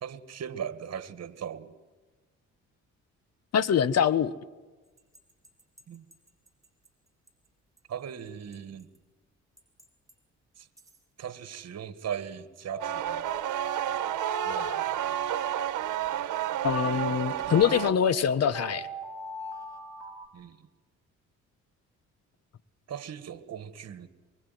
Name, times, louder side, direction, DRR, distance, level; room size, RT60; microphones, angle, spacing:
voice 1, 0.0-1.7 5.9-6.1 7.9-8.9 10.6-10.7 11.2-13.3 14.4-14.9 20.3-20.7 22.9-24.1, right 8 dB, 55° right, 2.1 m, -38 dB
voice 2, 3.5-4.3 16.6-18.9, left 8 dB, 55° left, 1.3 m, -24 dB
sound 1, 5.0-6.9 7.3-7.4 7.8-7.9 8.5-9.0 9.6-10.1 10.6-11.0 12.7-16.4 17.6-20.3, right 1 dB, 10° right, 5.8 m, -42 dB
sound 2, 12.8-17.9, right 11 dB, 75° right, 1.4 m, -30 dB
24.0 x 24.0 x 9.3 m
cardioid pair, 90°, 30 cm